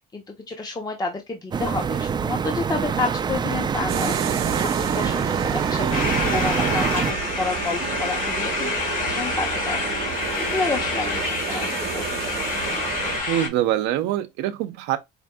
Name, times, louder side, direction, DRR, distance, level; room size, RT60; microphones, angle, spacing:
voice 1, 0.1-9.8 10.2-12.4, left 3 dB, 20° left, 0.8 m, -30 dB
sound 1, 1.5-7.1, right 6 dB, 25° right, 0.4 m, -25 dB
sound 2, 3.9-13.2, right 8 dB, 60° right, 0.9 m, -31 dB
sound 3, 5.9-13.5, left 3 dB, 45° left, 2.0 m, -27 dB
voice 2, 13.3-15.0, right 12 dB, 90° right, 0.6 m, -24 dB
5.1 x 2.6 x 2.2 m
cardioid pair, 115°, 18 cm